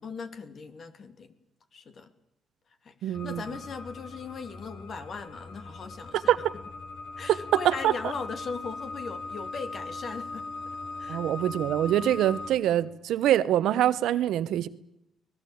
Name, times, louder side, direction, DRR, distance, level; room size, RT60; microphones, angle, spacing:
voice 1, 0.0-1.3 1.7-2.1 2.8-6.3 7.2-10.5 11.0-11.2, left 5 dB, 50° left, 2.7 m, -39 dB
voice 2, 3.0-3.4 6.1-6.5 7.3-7.4 7.6-7.9 11.1-14.7, right 12 dB, 80° right, 1.0 m, -24 dB
sound 1, 3.1-12.5, left 3 dB, 70° left, 4.2 m, -40 dB
24.0 x 19.5 x 8.7 m
cardioid pair, 90°, 0 cm